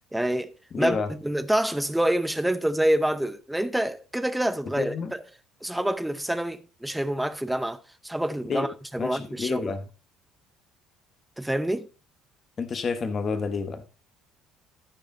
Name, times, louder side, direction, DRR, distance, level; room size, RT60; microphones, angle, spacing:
voice 1, 0.1-4.9 5.6-8.7 8.9-9.7 11.4-11.9, right 1 dB, 5° right, 0.7 m, -27 dB
voice 2, 0.7-1.1 4.8-5.1 8.5-8.7 9.0-9.8 12.6-13.8, left 5 dB, 30° left, 1.2 m, -29 dB
14.5 x 4.9 x 3.8 m
cardioid pair, 145°, 0 cm